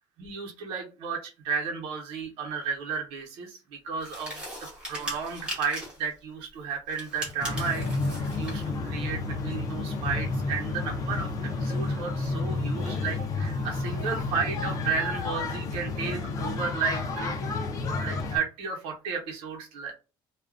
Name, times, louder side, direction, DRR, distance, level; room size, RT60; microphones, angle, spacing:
voice 1, 0.2-4.4 4.9-17.4 18.0-19.9, right 5 dB, 80° right, 0 dB, 0.9 m, -33 dB
Kopfhörer - Abnehmen und Aufsetzen, 4.0-6.0 6.9-8.7, right 1 dB, 10° right, 1.0 m, -39 dB
sound 1, 7.4-18.4, left 3 dB, 35° left, 0.6 m, -31 dB
2.4 x 2.2 x 2.4 m, 0.31 s
cardioid pair, 170°, 10 cm